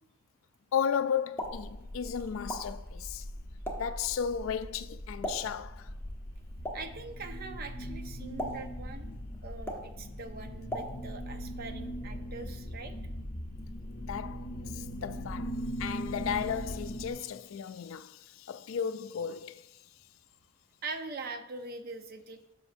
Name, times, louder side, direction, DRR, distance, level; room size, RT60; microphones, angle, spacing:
voice 1, 0.7-3.2 3.7-5.9 14.0-14.5 14.7-19.6, left 7 dB, 70° left, 0.3 m, -34 dB
Explosion, 1.1-11.4, equal, 10° left, 0.9 m, -43 dB
sound 1, 1.4-17.1, equal, 50° left, 0.7 m, -40 dB
voice 2, 6.7-13.0 20.8-22.4, right 3 dB, 45° right, 0.6 m, -43 dB
9.9 x 6.3 x 2.6 m
head